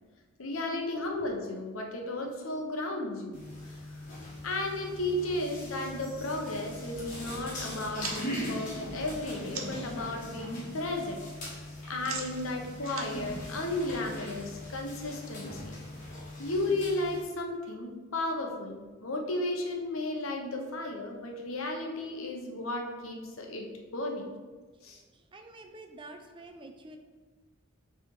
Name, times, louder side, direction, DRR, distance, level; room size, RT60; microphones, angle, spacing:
voice 1, 0.4-3.4 3.7-3.8 4.4-11.2 11.9-15.7 16.4-24.3 24.8-25.0, left 2 dB, 80° left, 2 dB, 1.0 m, -34 dB
sound 1, 3.3-17.2, left 1 dB, 40° left, 1.5 m, -41 dB
sound 2, 8.0-9.9 10.3-10.8 11.0-14.3, right 5 dB, 90° right, 0.9 m, -43 dB
voice 2, 24.8-27.0, right 2 dB, 25° right, 5 dB, 0.4 m, -49 dB
6.8 x 3.5 x 4.6 m, 1.4 s
head